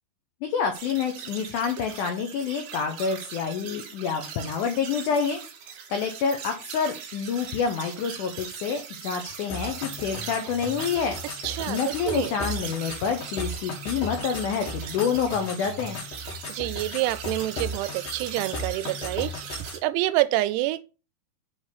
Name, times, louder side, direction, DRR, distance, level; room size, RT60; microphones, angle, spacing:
voice 1, 0.4-5.4 5.9-11.1 11.7-16.0, left 6 dB, 90° left, 1.7 m, -28 dB
sound 1, 0.7-19.8, right 7 dB, 65° right, 2.4 m, -40 dB
sound 2, 9.5-19.8, left 2 dB, 55° left, 1.9 m, -37 dB
voice 2, 11.4-12.3 16.5-20.8, right 16 dB, 85° right, 2.6 m, -27 dB
7.8 x 3.7 x 3.9 m
omnidirectional pair, 4.7 m